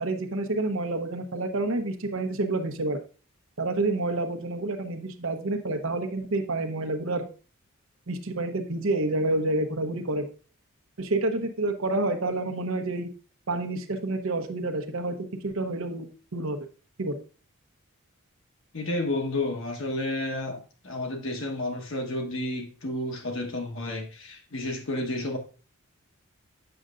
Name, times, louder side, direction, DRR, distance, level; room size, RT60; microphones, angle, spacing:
voice 1, 0.0-3.0 3.6-7.2 8.1-10.3 11.0-13.1 13.5-16.1 16.3-16.6 17.0-17.2, right 2 dB, 65° right, 5 dB, 0.9 m, -28 dB
voice 2, 18.7-25.4, left 1 dB, 60° left, 3 dB, 1.3 m, -31 dB
7.8 x 6.5 x 2.5 m, 0.37 s
head